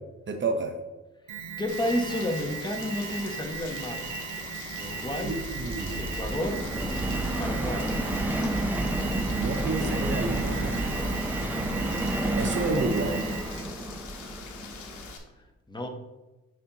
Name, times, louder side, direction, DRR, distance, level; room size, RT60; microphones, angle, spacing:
voice 1, 0.3-0.8 5.2-6.0 9.4-11.0 12.4-13.3, right 3 dB, 40° right, 5 dB, 0.7 m, -30 dB
Alarm, 1.3-13.7, right 6 dB, 75° right, 1.1 m, -38 dB
voice 2, 1.6-4.1 4.8-5.4 6.0-6.7 7.4-7.9 15.7-15.9, left 1 dB, 15° left, 3 dB, 1.0 m, -31 dB
Rain, 1.7-15.2, left 5 dB, 80° left, 1.1 m, -43 dB
Subway metro underground, 3.8-15.1, right 1 dB, 5° right, 0.6 m, -30 dB
9.2 x 4.2 x 2.9 m, 1.1 s
cardioid pair, 90°, 30 cm